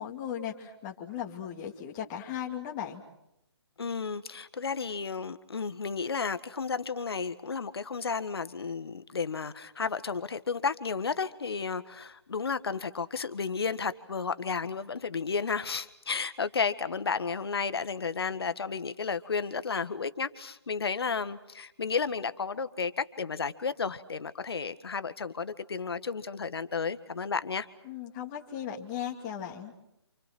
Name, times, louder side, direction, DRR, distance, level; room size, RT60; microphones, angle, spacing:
voice 1, 0.0-3.0 27.8-29.7, left 9 dB, 25° left, 1 dB, 2.6 m, -37 dB
voice 2, 3.8-27.7, left 5 dB, 60° left, 12 dB, 1.7 m, -32 dB
29.0 x 28.0 x 6.1 m, 0.82 s
figure-of-eight pair, 140°, 14 cm